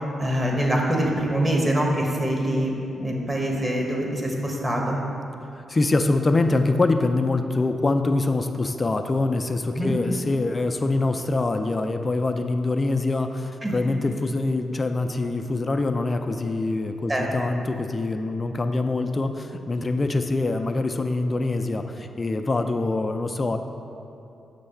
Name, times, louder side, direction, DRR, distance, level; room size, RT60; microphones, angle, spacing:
voice 1, 0.2-5.0 9.8-10.0 13.6-13.7 17.1-17.2, right 1 dB, 25° right, -1 dB, 1.4 m, -24 dB
voice 2, 5.7-23.6, left 2 dB, 35° left, 6 dB, 0.4 m, -24 dB
6.8 x 3.3 x 5.5 m, 2.9 s
hypercardioid pair, 45°, 0 cm